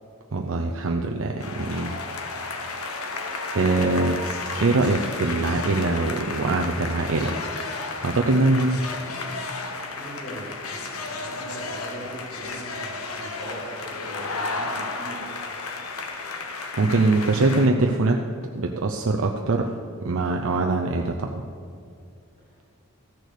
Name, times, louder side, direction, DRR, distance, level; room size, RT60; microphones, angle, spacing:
voice 1, 0.3-1.9 2.4-2.5 3.5-7.4 8.0-8.8 16.8-18.2 18.5-19.7 20.0-21.3, right 2 dB, 65° right, 2 dB, 0.6 m, -23 dB
sound 1, 1.4-17.7, left 3 dB, 85° left, 1.1 m, -33 dB
voice 2, 9.9-10.5 11.0-15.3 17.0-17.8 22.5-22.8, right 1 dB, 45° left, -5 dB, 2.7 m, -41 dB
14.0 x 6.5 x 6.6 m, 2.3 s
head